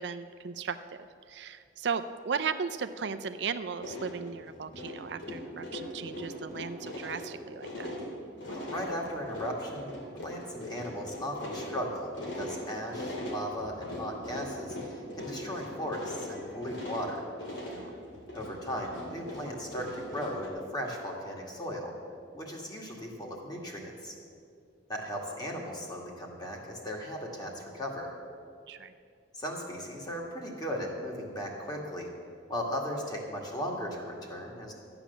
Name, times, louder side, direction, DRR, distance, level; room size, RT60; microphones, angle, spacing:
voice 1, 0.0-7.9 17.7-17.9 28.7-28.9, right 6 dB, 65° right, 10 dB, 0.5 m, -36 dB
sound 1, 3.8-20.5, left 1 dB, 90° left, 2.6 m, -40 dB
voice 2, 8.5-17.3 18.3-21.9 22.3-24.2 24.9-28.1 29.3-32.1 32.5-34.7, equal, 20° left, -1 dB, 2.1 m, -37 dB
13.0 x 8.8 x 7.1 m, 2.3 s
head